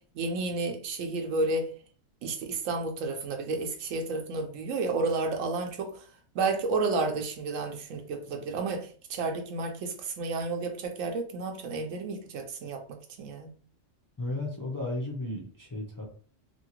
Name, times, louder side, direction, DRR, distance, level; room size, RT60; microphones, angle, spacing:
voice 1, 0.1-1.7 2.2-6.0 6.3-12.8 13.2-13.5, right 3 dB, 85° right, 1.0 m, -31 dB
voice 2, 14.2-16.1, left 2 dB, 25° left, 0.4 m, -34 dB
2.8 x 2.6 x 2.9 m
omnidirectional pair, 1.3 m